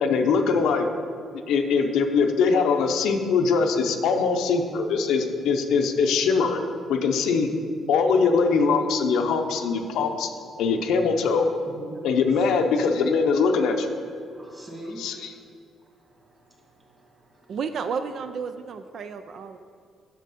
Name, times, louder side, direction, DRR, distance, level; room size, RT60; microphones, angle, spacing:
voice 1, 0.0-0.9 1.5-6.6 6.9-7.5 7.9-10.3 10.6-11.5 12.0-13.9 15.0-15.1, left 5 dB, 85° left, 5 dB, 0.6 m, -22 dB
voice 2, 11.7-12.0 12.4-12.8 14.3-17.6 19.4-19.5, right 1 dB, 25° right, -1 dB, 2.1 m, -44 dB
voice 3, 17.5-19.6, right 6 dB, 60° right, 9 dB, 0.3 m, -32 dB
8.3 x 6.4 x 4.1 m, 2.3 s
cardioid pair, 90°, 0 cm